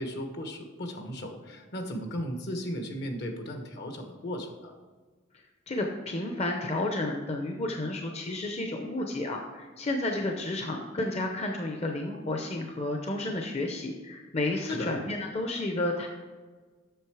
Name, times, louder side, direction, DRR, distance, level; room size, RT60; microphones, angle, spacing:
voice 1, 0.0-4.7 14.7-15.0, equal, 60° left, 5 dB, 1.2 m, -36 dB
voice 2, 5.7-16.1, left 2 dB, 35° left, 2 dB, 0.7 m, -31 dB
7.9 x 6.3 x 4.8 m, 1.4 s
head